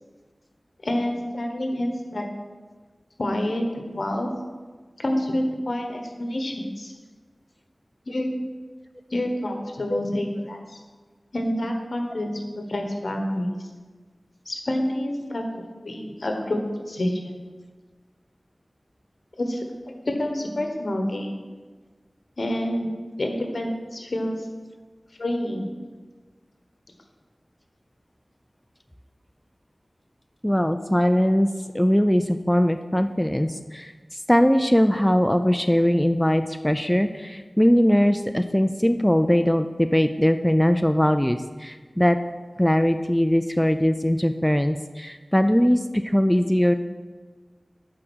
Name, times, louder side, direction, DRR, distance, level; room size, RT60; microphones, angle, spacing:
voice 1, 0.8-2.2 3.2-3.6 3.9-4.3 5.0-6.9 8.1-8.3 9.1-10.8 11.3-13.6 14.4-16.6 16.9-17.3 19.4-19.6 20.1-21.4 22.4-24.4 25.2-25.7, left 1 dB, 75° left, 3 dB, 1.2 m, -28 dB
voice 2, 30.4-31.5 31.7-33.9 34.3-42.2 42.6-46.7, equal, 5° left, 8 dB, 0.4 m, -20 dB
8.7 x 4.9 x 6.3 m, 1.4 s
wide cardioid pair, 65°, 0 cm